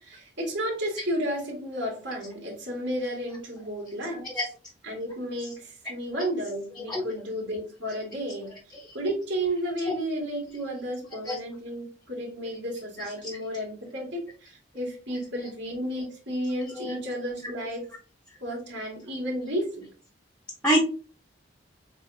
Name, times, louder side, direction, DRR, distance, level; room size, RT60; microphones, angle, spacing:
voice 1, 0.0-4.3 4.8-8.5 8.9-17.9 18.4-19.9, equal, 65° right, -3 dB, 2.3 m, -32 dB
voice 2, 4.1-4.4 6.2-6.3 6.9-7.0 11.3-11.4 16.8-17.0 20.6-20.8, right 1 dB, 5° left, 0 dB, 0.8 m, -25 dB
7.1 x 2.5 x 2.6 m, 0.37 s
head